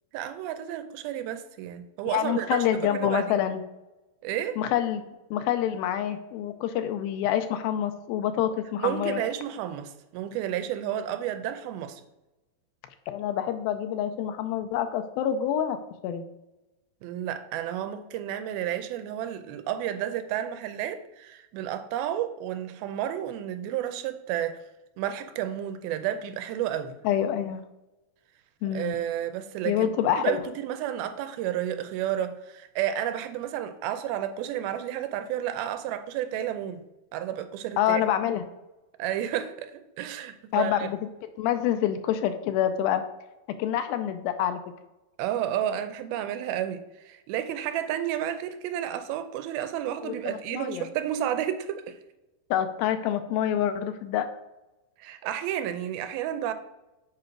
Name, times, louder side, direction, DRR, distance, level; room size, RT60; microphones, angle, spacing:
voice 1, 0.1-2.6 2.9-3.4 4.2-4.6 8.8-12.0 17.0-24.6 25.0-27.0 28.6-29.9 30.2-36.8 37.1-38.0 39.0-40.9 45.2-52.0 55.0-56.5, right 11 dB, 90° right, 9 dB, 2.5 m, -31 dB
voice 2, 2.1-3.6 4.6-9.2 13.1-15.8 16.0-16.2 27.0-27.6 28.6-29.0 29.7-30.4 37.8-38.4 40.5-41.0 41.4-43.0 43.6-44.6 50.0-50.9 52.5-54.3, left 10 dB, 85° left, 8 dB, 2.4 m, -27 dB
7.4 x 4.9 x 4.6 m, 0.99 s
omnidirectional pair, 4.3 m